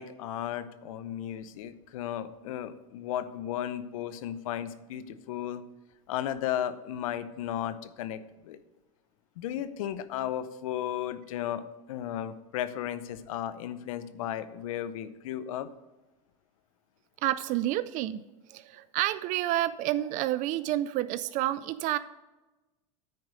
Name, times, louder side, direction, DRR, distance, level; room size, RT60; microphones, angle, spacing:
voice 1, 0.0-5.6 6.1-8.6 9.4-15.7, left 11 dB, 80° left, 14 dB, 0.7 m, -35 dB
voice 2, 17.2-18.2 18.5-22.0, right 14 dB, 50° right, 15 dB, 0.4 m, -29 dB
9.3 x 4.8 x 6.1 m, 1.1 s
supercardioid pair, 115°, 17 cm